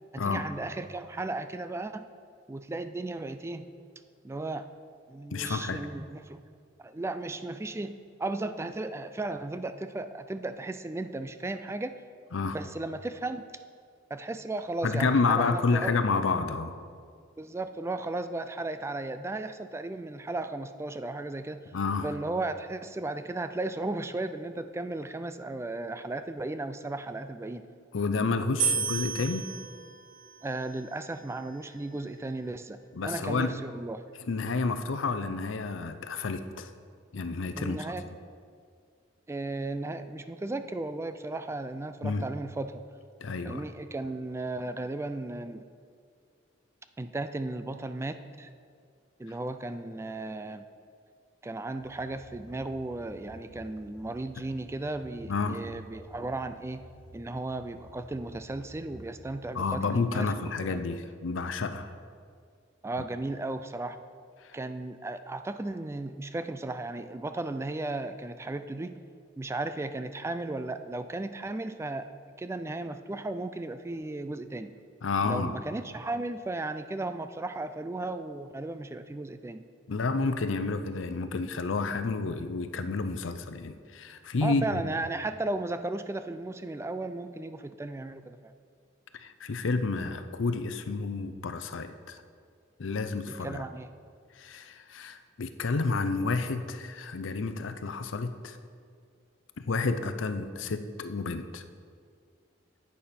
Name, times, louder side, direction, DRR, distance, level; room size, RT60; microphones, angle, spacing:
voice 1, 0.1-2.1 2.5-3.7 4.2-4.7 5.1-6.4 6.8-12.0 12.5-13.5 14.1-15.9 17.4-21.6 22.0-27.7 28.6-28.8 30.4-34.0 37.5-38.1 39.3-42.8 43.4-45.6 47.0-48.5 49.2-50.6 51.4-56.8 57.1-60.3 60.6-60.8 62.8-64.0 64.5-69.0 69.4-72.1 72.4-74.7 75.2-79.6 84.4-88.5 93.3-93.9, right 2 dB, 15° right, 10 dB, 0.3 m, -35 dB
voice 2, 5.3-5.9 12.3-12.6 14.8-16.8 21.7-22.1 27.9-29.5 32.9-33.6 34.3-36.7 37.1-37.9 42.0-42.2 43.2-43.6 55.3-55.6 59.5-61.9 75.0-75.6 79.9-84.8 89.1-92.2 92.8-93.6 94.4-98.6 99.6-101.6, left 4 dB, 75° left, 10 dB, 0.6 m, -30 dB
sound 1, 28.6-31.8, right 6 dB, 45° right, 0.9 m, -33 dB
sound 2, 51.8-59.6, right 1 dB, 80° right, 0.8 m, -52 dB
11.0 x 8.4 x 4.3 m, 2.2 s
head